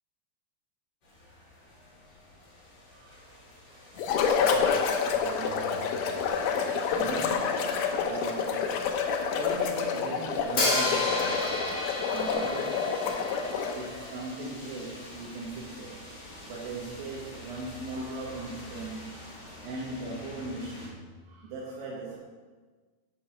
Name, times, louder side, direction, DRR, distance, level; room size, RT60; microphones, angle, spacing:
sound 1, 1.0-20.9, left 1 dB, 35° left, 2.3 m, -48 dB
voice 1, 2.9-3.3 4.4-13.5 13.7-22.2, right 2 dB, 85° right, -5 dB, 3.0 m, -40 dB
sound 2, 4.0-13.9, left 6 dB, 75° left, 2.2 m, -28 dB
Hi-hat, 10.6-14.5, left 2 dB, 60° left, 0.9 m, -31 dB
7.0 x 6.4 x 5.8 m, 1.4 s
omnidirectional pair, 4.0 m